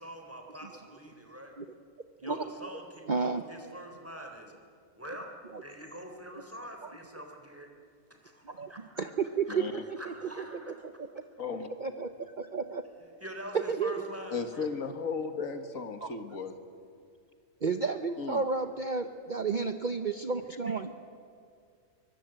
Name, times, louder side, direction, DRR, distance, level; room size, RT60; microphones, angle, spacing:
voice 1, 0.0-1.5 2.2-4.5 4.9-5.3 5.6-7.7 8.1-8.9 9.5-9.6 10.0-10.7 13.0-14.7, equal, 10° right, 3 dB, 3.6 m, -44 dB
voice 2, 2.2-2.7 3.1-3.4 8.4-8.7 9.0-10.4 10.8-11.1 11.8-12.8 13.7-13.9 16.0-16.1 17.6-20.9, right 5 dB, 40° right, 8 dB, 0.9 m, -32 dB
voice 3, 9.5-9.8 11.4-11.7 14.3-16.5 18.2-18.4, left 5 dB, 75° left, 8 dB, 2.0 m, -35 dB
24.0 x 22.5 x 9.0 m, 2.3 s
omnidirectional pair, 1.4 m